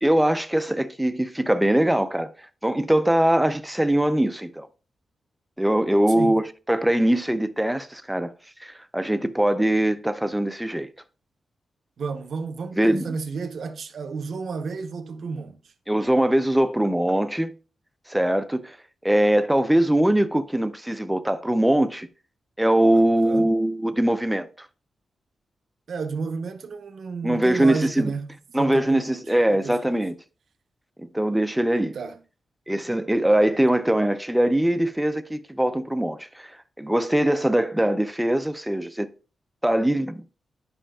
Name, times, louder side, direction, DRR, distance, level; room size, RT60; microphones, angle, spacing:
voice 1, 0.0-4.7 5.6-8.3 8.6-10.9 12.7-13.1 15.9-17.5 18.1-18.8 19.0-22.1 22.6-24.7 27.2-28.1 28.5-30.1 31.0-32.0 32.7-39.1 39.6-40.2, right 1 dB, 5° right, 0.4 m, -22 dB
voice 2, 12.0-15.6 22.9-23.5 25.9-28.3 28.5-29.2 29.5-30.1 31.9-32.2, right 4 dB, 55° right, 0.7 m, -32 dB
9.9 x 5.6 x 2.2 m
wide cardioid pair, 165°, 0 cm